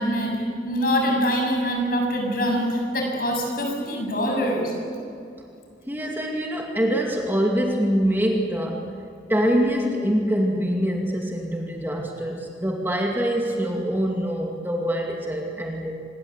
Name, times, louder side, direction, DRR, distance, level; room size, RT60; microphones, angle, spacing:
voice 1, 0.0-4.7, equal, 50° left, 1 dB, 7.2 m, -24 dB
voice 2, 5.9-8.9 9.3-15.9, equal, 10° right, 0 dB, 2.2 m, -24 dB
26.0 x 21.0 x 8.3 m, 2.5 s
head